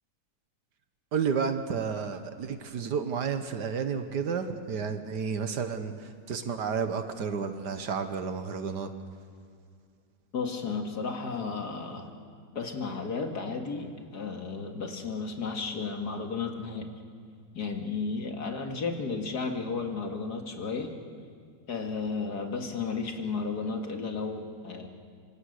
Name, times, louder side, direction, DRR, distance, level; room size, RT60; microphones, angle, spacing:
voice 1, 1.1-8.9, right 6 dB, 70° right, 8 dB, 1.8 m, -31 dB
voice 2, 10.3-12.1 12.5-16.9 17.5-20.9 21.7-24.9, left 4 dB, 60° left, 3 dB, 2.5 m, -33 dB
26.5 x 25.0 x 6.6 m, 2.2 s
omnidirectional pair, 1.9 m